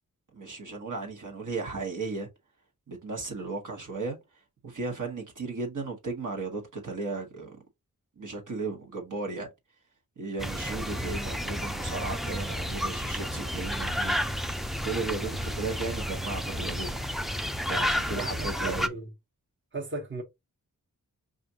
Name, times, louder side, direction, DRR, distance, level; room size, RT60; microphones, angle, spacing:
voice 1, 0.3-2.3 2.9-4.2 4.6-7.6 8.2-9.5 10.2-14.5 14.8-17.0 17.6-18.9, right 3 dB, 60° right, 1.2 m, -35 dB
sound 1, 10.4-18.9, equal, ahead, 0.4 m, -31 dB
voice 2, 18.0-19.1 19.7-20.2, right 3 dB, 35° right, 1.1 m, -36 dB
4.9 x 2.5 x 2.8 m
wide cardioid pair, 75°, 35 cm